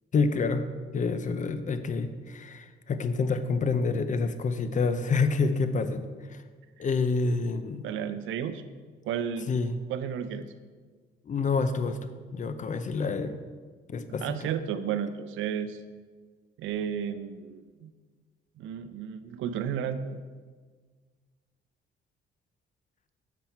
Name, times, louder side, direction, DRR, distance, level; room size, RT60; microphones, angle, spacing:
voice 1, 0.1-0.7 0.9-6.0 6.3-6.4 6.8-7.9 9.5-9.8 11.3-13.4 13.9-14.3, left 4 dB, 40° left, 11 dB, 0.5 m, -28 dB
voice 2, 7.8-8.6 9.0-9.5 9.9-10.5 14.1-15.8 16.6-17.9 18.6-20.2, right 8 dB, 80° right, 12 dB, 0.5 m, -33 dB
7.0 x 6.0 x 4.3 m, 1.5 s
cardioid pair, 90°, 20 cm